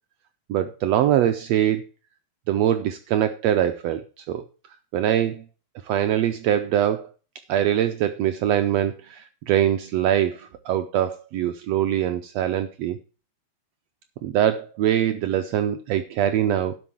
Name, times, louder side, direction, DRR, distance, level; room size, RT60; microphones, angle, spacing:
voice 1, 0.5-1.8 2.5-4.0 4.3-4.4 4.9-5.4 5.8-7.1 7.5-13.0 14.2-16.7, right 11 dB, 75° right, 9 dB, 1.5 m, -23 dB
11.5 x 5.6 x 7.1 m, 0.37 s
omnidirectional pair, 3.6 m